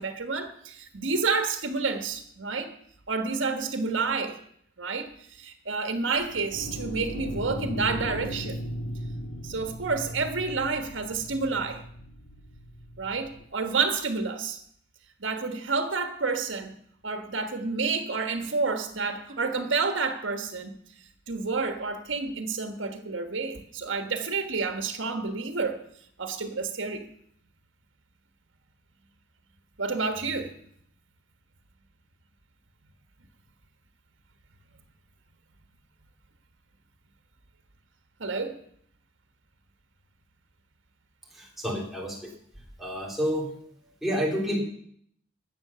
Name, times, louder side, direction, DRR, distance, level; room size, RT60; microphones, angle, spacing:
voice 1, 0.0-2.7 3.1-4.4 4.8-5.1 5.4-8.6 9.4-11.8 13.0-14.6 15.2-16.7 17.0-20.7 21.3-25.8 26.2-27.1 29.8-30.5 38.2-38.5, right 4 dB, 80° right, 7 dB, 1.5 m, -29 dB
sound 1, 6.2-13.4, equal, 85° left, 1.9 m, -37 dB
voice 2, 41.3-42.3 42.8-43.5 43.8-44.6, equal, ahead, -2 dB, 2.7 m, -29 dB
12.5 x 7.8 x 6.9 m, 0.66 s
head